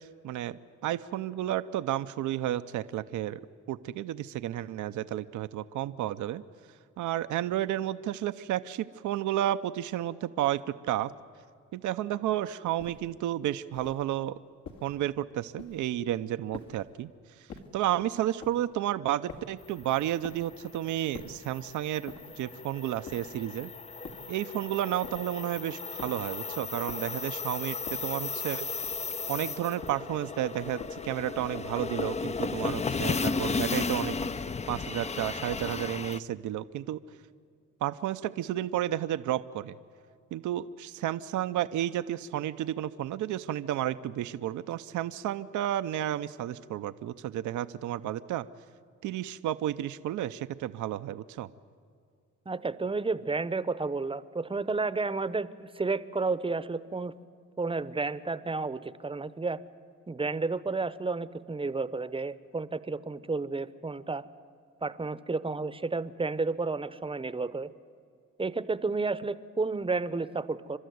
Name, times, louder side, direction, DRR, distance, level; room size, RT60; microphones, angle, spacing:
voice 1, 0.0-3.4 3.7-6.4 7.0-11.1 11.7-14.3 14.8-17.1 17.7-23.7 24.3-28.9 29.3-34.2 34.7-37.0 37.8-39.8 40.3-48.5 49.0-51.5, right 12 dB, 75° right, 12 dB, 0.7 m, -32 dB
sound 1, 12.8-13.2 13.7-14.1 14.6-15.0 15.6-16.0 16.5-17.0 17.5-17.9 18.4-18.7 19.3-19.7 20.2-20.6 21.1-21.5 22.1-22.5 23.0-23.5 24.0-24.4 25.0-25.4 26.0-26.3 26.9-27.3 27.9-28.3 28.8-29.2 29.8-30.2 30.8-31.2, left 5 dB, 70° left, 2.3 m, -47 dB
sound 2, 19.7-36.2, left 4 dB, 20° left, 0.5 m, -35 dB
voice 2, 52.5-57.1 57.6-59.6 60.1-64.2 64.8-67.7 68.4-70.8, right 3 dB, 20° right, 15 dB, 0.8 m, -31 dB
29.5 x 13.0 x 9.4 m, 2.3 s
cardioid pair, 90°, 30 cm